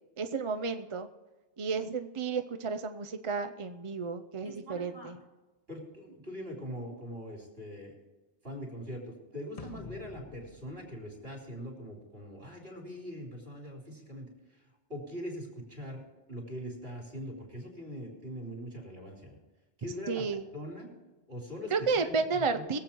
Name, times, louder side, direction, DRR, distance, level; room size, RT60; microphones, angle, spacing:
voice 1, 0.2-1.1 1.6-5.2 20.1-20.4 21.7-22.8, right 4 dB, 35° right, 9 dB, 0.5 m, -32 dB
voice 2, 4.4-5.2 5.7-7.9 8.4-14.3 14.9-19.4 19.8-20.2 20.5-20.9 21.3-22.2 22.5-22.8, equal, 55° right, 0 dB, 4.0 m, -42 dB
sound 1, 9.6-12.0, left 4 dB, 35° left, 0.8 m, -49 dB
21.5 x 8.0 x 4.5 m, 1.2 s
omnidirectional pair, 1.2 m